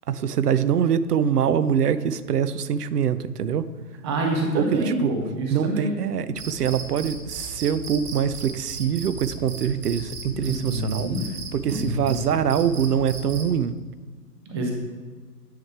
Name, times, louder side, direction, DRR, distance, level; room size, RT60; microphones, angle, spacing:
voice 1, 0.1-3.7 4.5-5.1 5.5-11.1 11.5-13.8, right 8 dB, 70° right, 14 dB, 0.6 m, -24 dB
voice 2, 4.0-6.0 10.3-11.2 11.7-12.1 14.5-14.7, right 1 dB, 20° right, 1 dB, 0.5 m, -27 dB
Cricket, 6.3-13.5, right 3 dB, 35° right, 1.1 m, -37 dB
9.5 x 3.2 x 4.8 m, 1.5 s
figure-of-eight pair, 120°, 49 cm